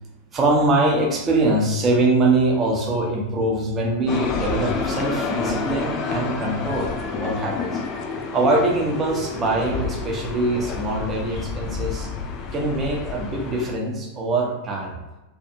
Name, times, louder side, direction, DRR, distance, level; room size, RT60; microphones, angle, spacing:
voice 1, 0.3-7.8 8.3-12.1 12.5-15.0, right 2 dB, 25° right, -1 dB, 0.7 m, -23 dB
sound 1, 4.1-13.7, left 4 dB, 35° left, 0.3 m, -29 dB
2.7 x 2.5 x 2.3 m, 1.0 s
figure-of-eight pair, 90°, 0 cm